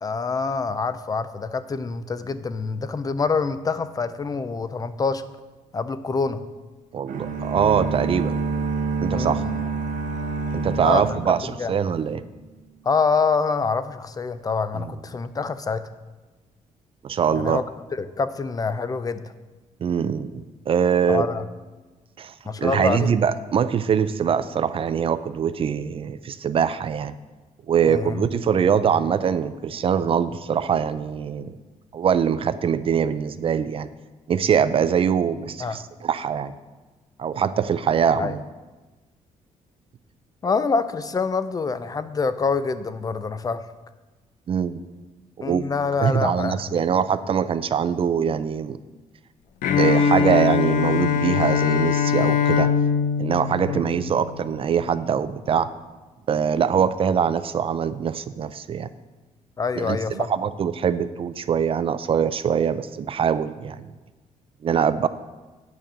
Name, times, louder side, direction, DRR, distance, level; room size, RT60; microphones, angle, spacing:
voice 1, 0.0-5.2 5.7-6.4 9.1-9.6 10.8-11.7 12.8-15.8 17.3-17.6 18.0-19.2 21.1-21.4 22.4-23.1 27.9-28.2 35.6-35.8 38.2-38.3 40.4-43.6 45.4-46.8 53.6-53.9 59.6-60.3, left 4 dB, 25° left, 13 dB, 0.5 m, -26 dB
voice 2, 6.9-8.3 9.0-9.4 10.5-12.2 14.7-14.9 17.0-17.6 19.8-21.3 22.2-27.1 27.7-31.6 31.9-33.9 34.3-36.5 37.2-38.4 44.5-44.8 45.4-45.6 46.0-48.8 49.8-52.7 53.2-55.7 56.3-58.9 59.8-63.9 64.6-65.1, right 7 dB, 40° right, 13 dB, 0.4 m, -23 dB
sound 1, 7.1-12.1, right 4 dB, 70° right, 1.0 m, -28 dB
Bowed string instrument, 49.6-54.5, left 7 dB, 90° left, 0.7 m, -22 dB
9.2 x 5.3 x 7.4 m, 1.2 s
cardioid pair, 125°, 14 cm